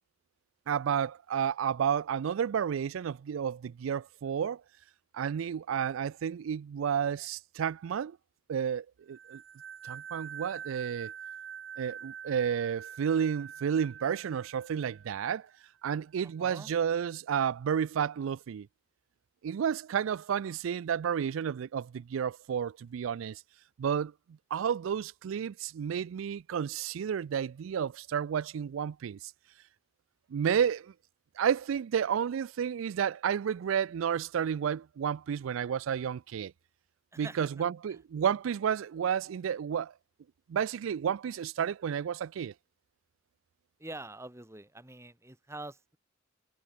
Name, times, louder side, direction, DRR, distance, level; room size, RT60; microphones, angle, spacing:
voice 1, 0.7-4.6 5.1-8.2 8.5-9.4 9.8-11.1 11.8-15.5 15.8-18.7 19.4-23.4 23.8-29.3 30.3-30.9 31.4-36.5 37.2-39.9 40.5-42.5, right 8 dB, 85° right, 0.3 m, -31 dB
sound 1, 9.1-15.6, right 8 dB, 60° right, 0.8 m, -45 dB
voice 2, 16.4-16.7 37.1-38.0 43.8-46.0, right 2 dB, 15° right, 2.5 m, -45 dB
head